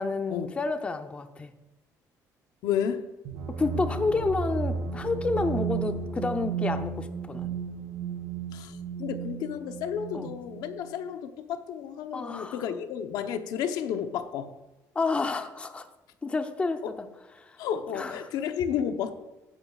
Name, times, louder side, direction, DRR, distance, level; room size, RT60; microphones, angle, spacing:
voice 1, 0.0-1.5 3.6-7.6 10.1-10.3 12.1-12.6 14.9-15.9 16.2-17.1 17.4-17.5 17.9-18.1, left 3 dB, 20° left, 0.7 m, -30 dB
voice 2, 2.6-3.0 8.5-14.5 15.2-15.4 16.8-16.9 17.6-19.1, left 8 dB, 80° left, 0.9 m, -32 dB
sound 1, 3.2-10.9, right 6 dB, 85° right, 4.1 m, -34 dB
15.0 x 10.5 x 2.4 m
cardioid pair, 145°, 7 cm